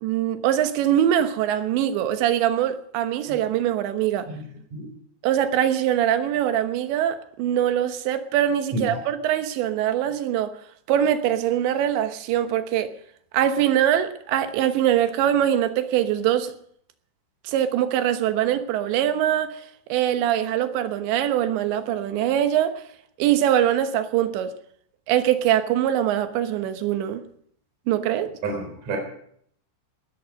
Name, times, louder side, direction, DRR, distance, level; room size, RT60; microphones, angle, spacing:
voice 1, 0.0-4.3 5.2-10.5 10.9-12.9 13.3-16.5 17.5-19.6 19.9-22.8 23.2-24.6 25.1-27.2 27.9-28.3, right 11 dB, 90° right, 3.5 m, -23 dB
voice 2, 28.4-29.0, right 2 dB, 40° right, 5.2 m, -29 dB
19.0 x 13.5 x 5.2 m
omnidirectional pair, 5.0 m